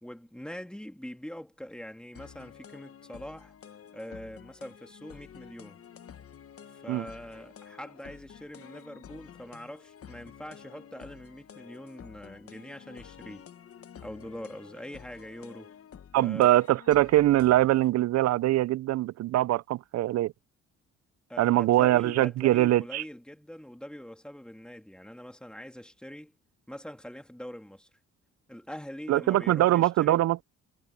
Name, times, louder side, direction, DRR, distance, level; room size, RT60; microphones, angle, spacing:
voice 1, 0.0-3.5 3.9-5.8 6.7-13.5 14.0-15.7 16.2-16.5 21.3-26.3 26.7-27.9 28.5-30.2, equal, 5° left, 2.5 m, -43 dB
sound 1, 2.1-17.9, left 8 dB, 50° left, 1.2 m, -50 dB
voice 2, 16.1-20.3 21.4-23.0 29.1-30.5, right 15 dB, 60° right, 0.5 m, -23 dB
cardioid pair, 90°, 30 cm